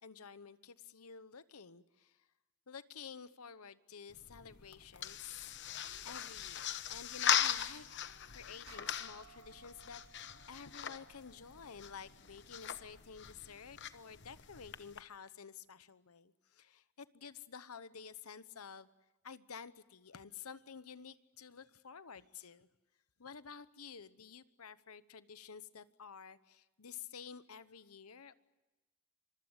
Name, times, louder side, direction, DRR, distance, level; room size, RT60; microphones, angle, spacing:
voice 1, 0.0-2.2 2.7-5.6 6.0-7.9 8.3-18.9 19.2-22.7 23.2-28.3, left 6 dB, 90° left, 15 dB, 1.0 m, -51 dB
sound 1, 4.1-15.0, left 9 dB, 55° left, 1.0 m, -40 dB
sound 2, 8.7-13.4, right 7 dB, 80° right, 1.8 m, -63 dB
26.0 x 23.5 x 8.1 m, 1.0 s
head